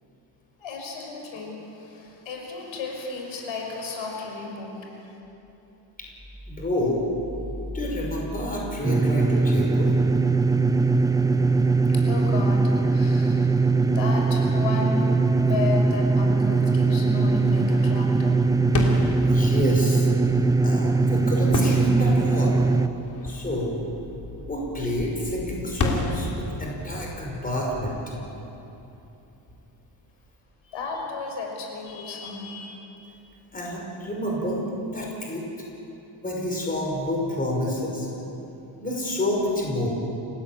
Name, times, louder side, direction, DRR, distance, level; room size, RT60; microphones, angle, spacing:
voice 1, 0.6-4.8 11.6-13.6 13.9-15.0 15.4-18.5 30.6-32.8, left 3 dB, 80° left, 1 dB, 5.8 m, -33 dB
voice 2, 6.5-7.0 7.7-9.9 19.2-20.1 20.6-22.6 23.2-23.8 24.5-27.9 33.5-34.6 34.9-35.5 36.2-38.1 38.8-39.9, left 1 dB, 20° left, -1 dB, 5.3 m, -28 dB
sound 1, 8.8-22.9, right 3 dB, 10° right, 0.5 m, -21 dB
sound 2, 18.6-29.2, left 2 dB, 40° left, 3.2 m, -33 dB
29.0 x 17.0 x 8.8 m, 3.0 s
cardioid pair, 155°, 46 cm